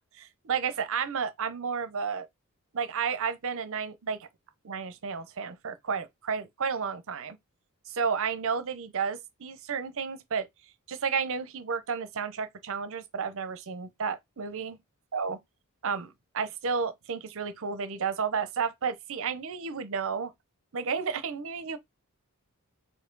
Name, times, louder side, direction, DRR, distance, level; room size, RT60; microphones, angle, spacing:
voice 1, 0.2-2.3 2.7-4.3 4.6-7.4 7.9-10.5 10.9-14.8 15.1-15.4 15.8-20.3 20.7-21.8, right 6 dB, 60° right, 0.6 m, -32 dB
4.7 x 2.6 x 3.8 m
head